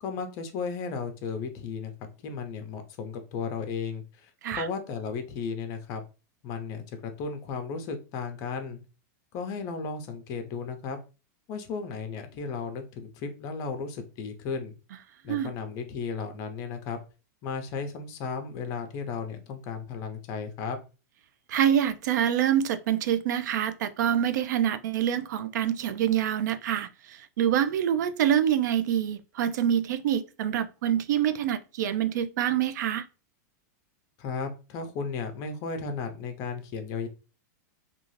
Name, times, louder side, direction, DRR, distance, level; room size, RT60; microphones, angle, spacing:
voice 1, 0.0-4.0 4.5-6.0 6.4-8.8 9.3-11.0 11.5-14.7 15.2-17.0 17.4-20.8 34.2-37.1, left 5 dB, 35° left, 0.6 m, -34 dB
voice 2, 21.5-33.0, right 10 dB, 75° right, 0.4 m, -26 dB
2.5 x 2.3 x 3.1 m
supercardioid pair, 155°, 10 cm